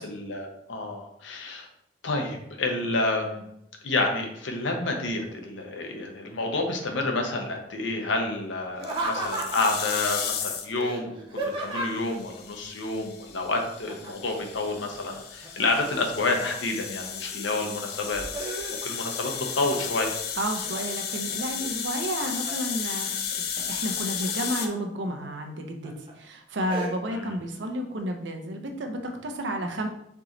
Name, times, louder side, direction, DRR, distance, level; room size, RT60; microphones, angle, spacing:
voice 1, 0.0-1.7 2.0-3.4 3.8-11.1 11.4-18.5 18.8-20.1 27.1-27.4, left 2 dB, 90° left, 3 dB, 0.9 m, -29 dB
Laughter, 8.7-9.9 10.8-12.1 13.9-14.3 14.7-16.3 16.8-17.5 17.9-19.2 19.6-20.1 20.6-21.4 21.9-22.7 23.9-24.7 25.2-25.3 25.8-26.1 26.7-26.9, right 2 dB, 30° right, 0.9 m, -35 dB
sound 1, 8.8-10.8 11.9-24.7, left 7 dB, 55° left, 0.5 m, -34 dB
voice 2, 20.4-29.9, right 1 dB, 75° right, 4 dB, 0.7 m, -32 dB
4.5 x 3.0 x 3.9 m, 0.75 s
head